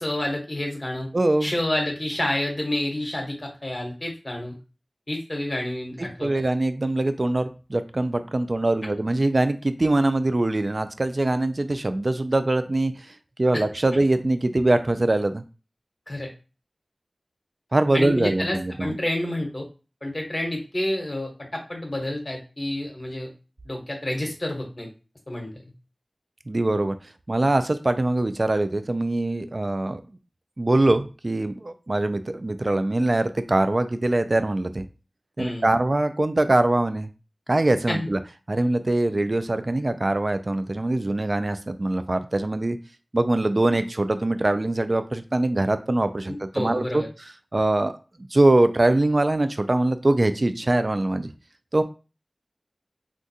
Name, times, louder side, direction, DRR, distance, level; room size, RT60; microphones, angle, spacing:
voice 1, 0.0-1.1 1.4-4.5 5.1-6.3 13.5-13.6 16.1-16.3 17.9-19.7 20.0-23.3 23.6-24.9 25.3-25.7 35.4-35.7 37.9-38.1 46.3-47.1, left 1 dB, 40° left, 1 dB, 1.0 m, -29 dB
voice 2, 1.1-1.5 6.2-12.9 13.4-15.4 17.7-19.0 26.5-27.0 27.3-30.0 30.6-34.8 35.4-37.1 37.5-38.2 38.5-42.8 43.1-47.0 47.5-47.9 48.3-51.3 51.7-51.8, right 2 dB, 55° right, 10 dB, 0.3 m, -23 dB
3.6 x 2.4 x 2.7 m, 0.33 s
wide cardioid pair, 55°, 0 cm